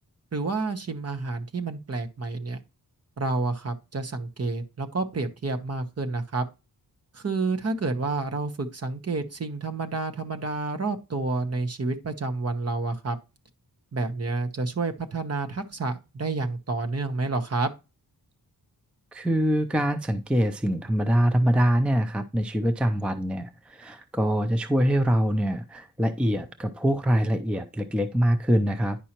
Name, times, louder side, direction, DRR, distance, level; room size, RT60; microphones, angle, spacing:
voice 1, 0.3-2.6 3.2-6.4 7.1-13.2 13.9-17.7, right 3 dB, 40° right, 1.0 m, -29 dB
voice 2, 19.1-29.0, equal, 5° right, 0.5 m, -24 dB
10.0 x 5.5 x 2.9 m
wide cardioid pair, 155°, 38 cm